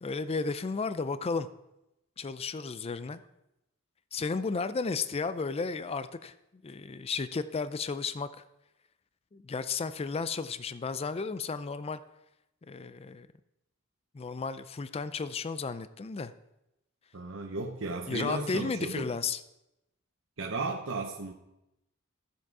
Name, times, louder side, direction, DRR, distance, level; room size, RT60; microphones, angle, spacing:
voice 1, 0.0-1.5 2.2-3.2 4.1-6.3 6.6-8.4 9.3-12.0 12.7-13.3 14.1-16.3 18.1-19.4, left 4 dB, 30° left, 13 dB, 0.4 m, -33 dB
voice 2, 17.1-19.1 20.4-21.3, right 3 dB, 65° right, 1 dB, 0.9 m, -35 dB
13.5 x 7.5 x 4.7 m, 0.88 s
head